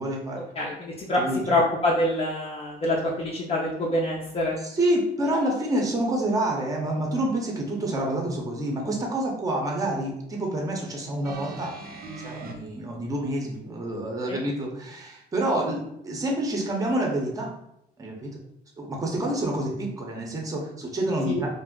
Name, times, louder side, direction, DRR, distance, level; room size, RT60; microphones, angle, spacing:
voice 1, 0.0-0.4 1.2-1.4 4.6-15.8 16.0-17.5 18.0-18.3 18.8-21.5, right 1 dB, 20° right, 0 dB, 0.7 m, -28 dB
voice 2, 0.6-1.2 1.5-4.6 14.3-14.4 21.3-21.4, left 1 dB, 35° left, -5 dB, 0.5 m, -25 dB
sound 1, 11.2-12.5 13.5-13.6, right 3 dB, 60° right, 0.6 m, -39 dB
2.5 x 2.0 x 3.6 m, 0.78 s
cardioid pair, 110°, 17 cm